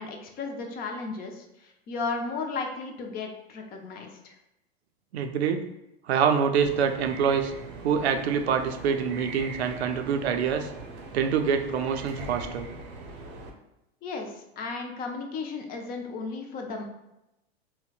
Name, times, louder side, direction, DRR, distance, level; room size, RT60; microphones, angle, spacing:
voice 1, 0.0-4.4 14.0-16.9, left 4 dB, 30° left, 3 dB, 0.5 m, -35 dB
voice 2, 5.1-5.6 6.1-7.5 7.8-10.7 11.1-12.7, right 7 dB, 85° right, 6 dB, 0.5 m, -25 dB
sound 1, 6.6-13.5, right 3 dB, 40° right, 0.6 m, -41 dB
3.8 x 2.1 x 2.3 m, 0.88 s
hypercardioid pair, 105°, 32 cm